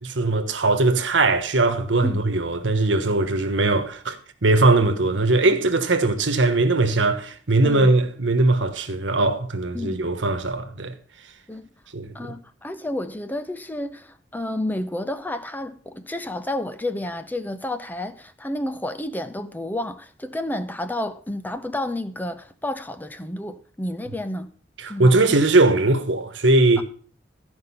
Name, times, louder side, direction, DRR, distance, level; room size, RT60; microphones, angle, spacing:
voice 1, 0.0-4.2 4.4-10.9 11.9-12.3 24.8-26.8, right 2 dB, 90° right, 1.2 m, -20 dB
voice 2, 12.1-24.5 24.9-25.1 26.8-26.9, left 1 dB, 10° left, 0.5 m, -30 dB
13.0 x 5.3 x 5.5 m
head